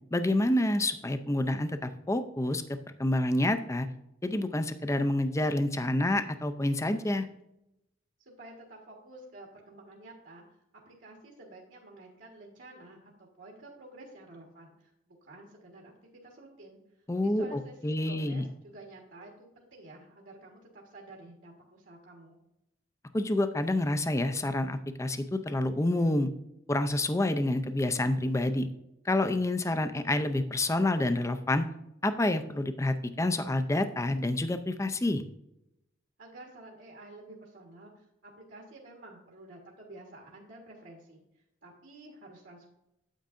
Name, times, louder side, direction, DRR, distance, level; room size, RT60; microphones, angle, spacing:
voice 1, 0.1-2.6 3.0-3.9 4.2-7.3 17.1-18.4 23.1-26.3 26.7-28.7 29.1-31.7 32.0-35.2, left 1 dB, 15° left, 9 dB, 0.4 m, -28 dB
voice 2, 8.2-10.6 10.8-15.9 16.2-22.4 36.2-42.7, right 2 dB, 70° right, -1 dB, 1.5 m, -51 dB
9.0 x 8.4 x 2.6 m, 0.85 s
head